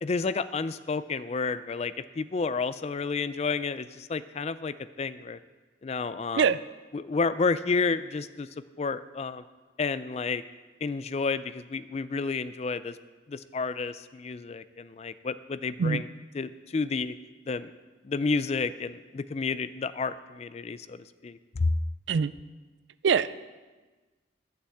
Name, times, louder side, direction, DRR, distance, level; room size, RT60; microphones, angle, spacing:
voice 1, 0.0-5.4 5.8-6.5 6.9-8.5 8.8-9.4 9.8-10.4 10.8-13.0 13.3-16.1 16.3-17.2 17.5-17.7 18.0-21.7, left 4 dB, 35° left, 14 dB, 0.3 m, -30 dB
voice 2, 23.0-23.4, right 6 dB, 65° right, 16 dB, 0.4 m, -23 dB
11.0 x 6.8 x 7.7 m, 1.3 s
head